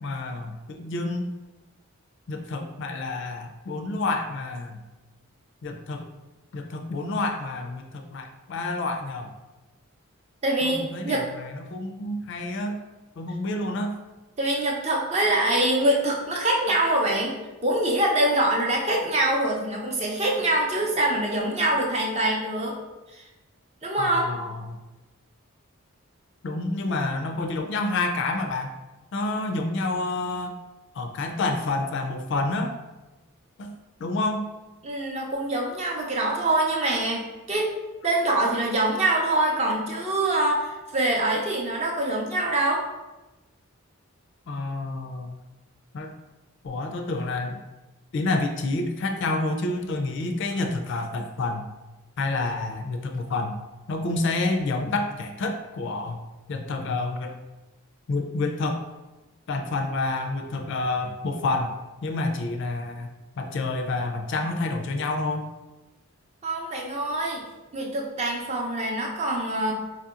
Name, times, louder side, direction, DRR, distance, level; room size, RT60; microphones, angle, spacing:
voice 1, 0.0-1.3 2.3-4.8 5.6-6.0 6.5-9.3 10.6-12.8 13.2-13.9 24.0-24.8 26.4-28.7 29.1-30.5 30.9-32.7 33.6-33.7 34.0-34.5 44.5-45.3 45.9-46.1 46.6-47.6 48.1-51.7 52.2-53.6 53.9-56.2 56.5-57.3 58.1-58.8 59.5-61.7 62.0-63.1 63.4-65.5, left 2 dB, 55° left, 5 dB, 0.3 m, -28 dB
voice 2, 10.4-11.2 14.4-17.4 17.6-22.8 23.1-23.2 23.8-24.3 34.8-37.2 37.5-37.7 38.0-42.8 66.4-67.4 67.7-69.7, right 1 dB, 30° right, -1 dB, 0.5 m, -24 dB
4.3 x 2.7 x 2.4 m, 1.1 s
head